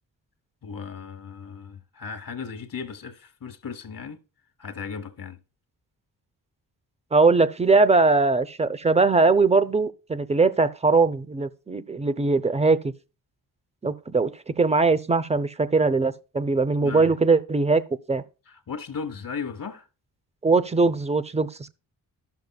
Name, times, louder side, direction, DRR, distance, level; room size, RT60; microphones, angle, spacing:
voice 1, 0.6-4.2 4.6-5.4 16.8-17.1 18.5-19.9, left 5 dB, 55° left, 1.1 m, -36 dB
voice 2, 7.1-12.9 13.8-17.8 18.1-18.2 20.4-21.7, right 3 dB, 15° right, 0.6 m, -21 dB
13.5 x 5.9 x 2.3 m
cardioid pair, 75°, 41 cm